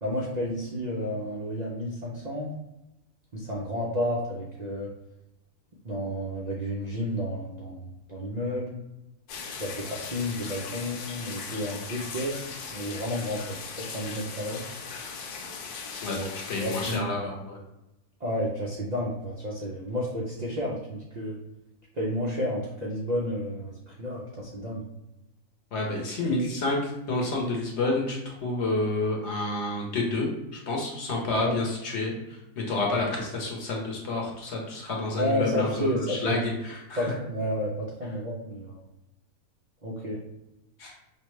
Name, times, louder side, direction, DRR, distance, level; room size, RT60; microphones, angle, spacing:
voice 1, 0.0-2.5 3.3-4.9 5.8-8.8 9.6-12.4 12.7-14.6 16.1-16.3 16.6-17.0 18.2-21.3 21.9-24.8 31.4-31.5 35.2-36.4 37.0-38.8 39.8-40.2, equal, 90° right, -4 dB, 0.3 m, -31 dB
sound 1, 9.3-17.0, left 5 dB, 90° left, 1.1 m, -38 dB
voice 2, 16.0-17.6 25.7-32.1 32.6-37.1 40.8-40.9, left 2 dB, 55° left, -1 dB, 1.0 m, -29 dB
4.8 x 2.2 x 3.1 m, 0.95 s
omnidirectional pair, 1.6 m